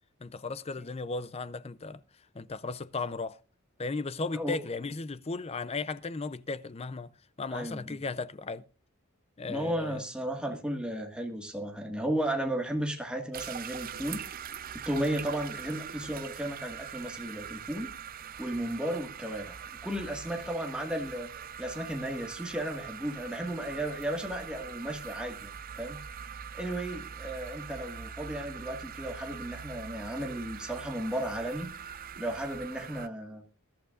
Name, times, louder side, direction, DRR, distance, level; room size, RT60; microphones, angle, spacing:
voice 1, 0.2-2.0 2.3-3.4 3.8-7.1 7.4-8.6 9.4-10.0 10.5-10.6, left 3 dB, 30° left, 0.5 m, -36 dB
voice 2, 7.5-8.0 9.5-14.2 14.8-17.9 18.4-19.6 19.8-21.3 21.6-25.5 25.8-26.0 26.5-31.7 32.2-33.4, right 1 dB, 5° right, 1.7 m, -34 dB
sound 1, 13.3-33.1, right 8 dB, 40° right, 0.5 m, -43 dB
21.0 x 11.5 x 2.5 m
head